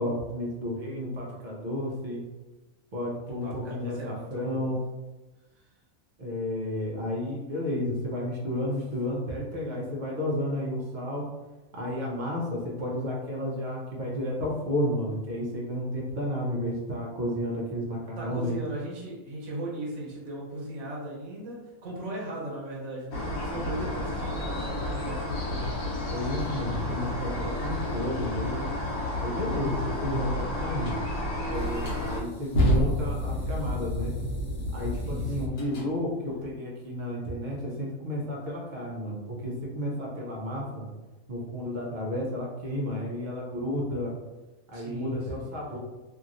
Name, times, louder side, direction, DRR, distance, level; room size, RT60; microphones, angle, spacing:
voice 1, 0.0-2.2 2.9-4.8 6.2-11.2 11.7-18.5 26.1-28.6 29.2-30.9 31.5-34.1 34.7-40.9 41.3-44.1 44.7-45.8, left 1 dB, 45° right, -3 dB, 0.6 m, -32 dB
voice 2, 3.4-4.8 18.2-26.0 35.0-35.5 44.7-45.5, right 1 dB, 60° right, -4 dB, 1.2 m, -38 dB
sound 1, 23.1-32.2, left 1 dB, 80° left, 1.2 m, -31 dB
sound 2, 30.8-31.0 31.6-35.9, left 1 dB, 60° left, 1.0 m, -29 dB
2.9 x 2.7 x 2.5 m, 1.1 s
omnidirectional pair, 1.5 m